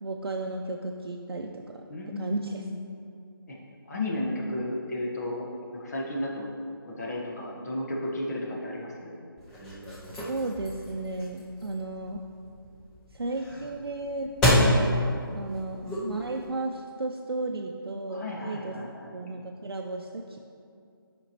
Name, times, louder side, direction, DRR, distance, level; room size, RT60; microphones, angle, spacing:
voice 1, 0.0-2.7 10.0-12.2 13.1-20.4, right 2 dB, 85° right, 1 dB, 0.5 m, -34 dB
voice 2, 1.9-2.8 3.5-3.6 3.9-5.5 5.7-6.5 6.9-9.2 18.1-19.1, left 1 dB, 45° left, -3 dB, 1.2 m, -33 dB
sound 1, 9.4-16.4, left 1 dB, 5° left, 0.5 m, -29 dB
9.0 x 5.2 x 2.9 m, 2.4 s
figure-of-eight pair, 160°, 12 cm